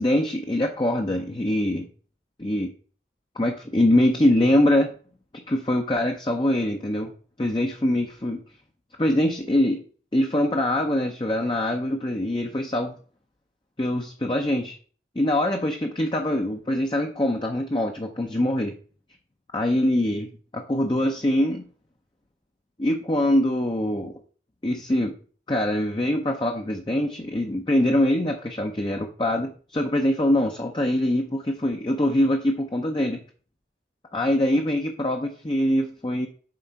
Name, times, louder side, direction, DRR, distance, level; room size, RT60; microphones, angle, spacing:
voice 1, 0.0-1.9 2.4-2.7 3.4-4.9 5.5-7.1 7.4-8.4 9.0-9.8 10.1-12.9 13.8-14.8 15.2-18.7 19.5-21.6 22.8-24.1 24.6-25.1 25.5-33.2 34.1-36.3, left 1 dB, 25° left, 3 dB, 0.7 m, -23 dB
7.7 x 3.8 x 5.7 m, 0.42 s
head